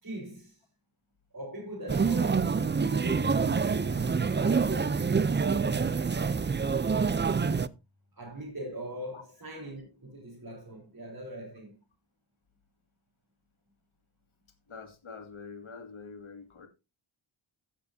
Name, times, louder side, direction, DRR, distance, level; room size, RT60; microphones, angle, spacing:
voice 1, 0.0-0.6 1.3-6.5 8.1-11.8, right 1 dB, 40° right, 4.0 m, -42 dB
sound 1, 1.9-7.7, right 5 dB, 25° right, 0.4 m, -27 dB
Keyboard (musical), 3.1-7.6, left 3 dB, 10° left, 3.0 m, -45 dB
voice 2, 14.7-16.7, left 5 dB, 70° left, 2.2 m, -45 dB
15.5 x 7.3 x 2.7 m
cardioid pair, 45°, 50 cm